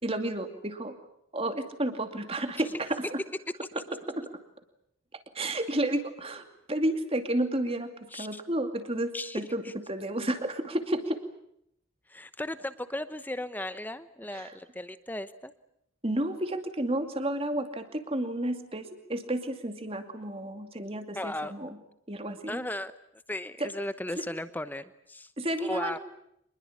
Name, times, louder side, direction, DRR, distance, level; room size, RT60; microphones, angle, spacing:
voice 1, 0.0-1.0 1.3-3.2 3.7-4.2 5.1-11.2 14.3-14.6 16.0-21.8 22.1-22.6 23.6-23.7 24.2-24.3 25.4-26.0, right 1 dB, 25° right, 7 dB, 2.5 m, -31 dB
voice 2, 12.1-15.5 21.1-21.5 22.5-22.9 23.3-25.3 25.6-26.0, left 1 dB, 10° left, 12 dB, 0.9 m, -36 dB
25.5 x 21.5 x 8.6 m, 0.74 s
head